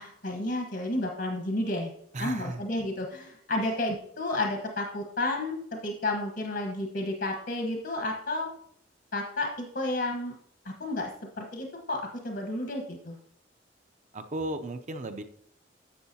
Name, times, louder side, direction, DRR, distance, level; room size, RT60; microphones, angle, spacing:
voice 1, 0.0-1.9 2.2-8.5 9.1-10.3 10.6-11.1 11.4-13.2, left 2 dB, 65° left, 3 dB, 1.3 m, -31 dB
voice 2, 2.1-2.6 3.6-3.7 14.1-15.2, right 2 dB, 40° right, 7 dB, 0.6 m, -35 dB
11.5 x 7.2 x 2.8 m, 0.67 s
head